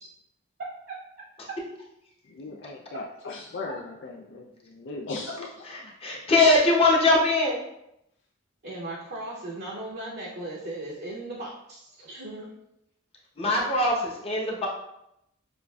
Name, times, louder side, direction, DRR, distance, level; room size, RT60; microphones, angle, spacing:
voice 1, 0.6-1.0 1.5-1.6 8.6-12.5, right 2 dB, 50° right, -5 dB, 0.7 m, -37 dB
voice 2, 2.2-5.5 5.8-5.9, left 3 dB, 60° left, 0 dB, 0.4 m, -38 dB
voice 3, 6.0-7.6 13.4-14.7, left 2 dB, 30° left, -3 dB, 0.9 m, -21 dB
6.8 x 2.5 x 2.3 m, 0.81 s
head